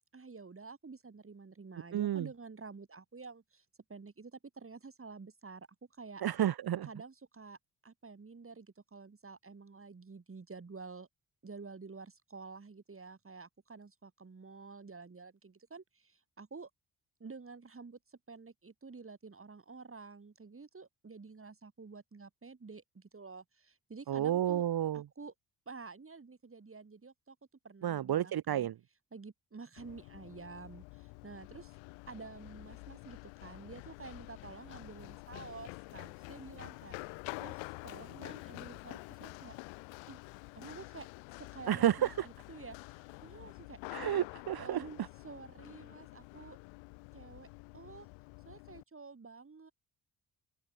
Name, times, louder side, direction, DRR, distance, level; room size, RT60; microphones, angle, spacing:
voice 1, 0.1-5.7 5.9-6.2 6.8-7.6 7.8-11.1 11.4-16.7 17.2-24.6 24.9-25.3 25.7-27.4 27.6-28.7 29.1-31.7 32.1-37.0 37.4-39.6 40.1-40.2 40.5-41.1 41.4-43.8 44.6-46.6 47.1-47.5 47.7-48.1 48.4-49.7, right 4 dB, 30° right, 3.2 m, -50 dB
voice 2, 1.9-2.3 6.2-6.9 24.1-25.0 27.8-28.7 41.7-42.3 43.9-44.9, right 11 dB, 50° right, 1.5 m, -31 dB
Run, 29.8-48.8, left 28 dB, 75° left, 1.8 m, -48 dB
open air
figure-of-eight pair, 40°, 46 cm